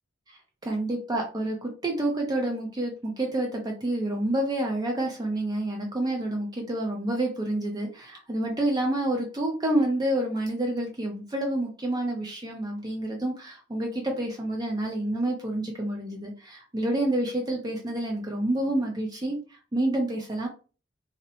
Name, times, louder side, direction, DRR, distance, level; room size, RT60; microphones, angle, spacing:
voice 1, 0.3-20.5, right 1 dB, 20° right, 1 dB, 0.4 m, -28 dB
2.7 x 2.0 x 2.7 m, 0.36 s
head